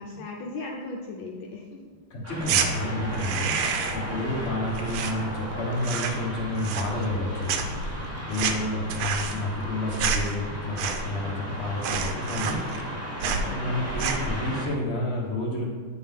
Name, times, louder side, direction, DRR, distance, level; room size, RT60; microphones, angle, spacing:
voice 1, 0.0-1.8 13.2-13.6, left 3 dB, 75° left, 0 dB, 1.4 m, -37 dB
voice 2, 2.1-7.6 8.3-12.6 13.4-15.7, left 1 dB, 40° left, -3 dB, 1.3 m, -30 dB
sound 1, 2.2-14.7, equal, 10° right, 0.8 m, -35 dB
sound 2, 2.4-2.7 3.1-4.1 4.3-5.5 5.8-6.3 6.6-7.2 7.5-11.2 11.5-11.6 11.8-12.9 13.2-13.5 13.9-14.3, right 6 dB, 90° right, 1.5 m, -29 dB
8.3 x 4.4 x 3.6 m, 1.5 s
omnidirectional pair, 2.3 m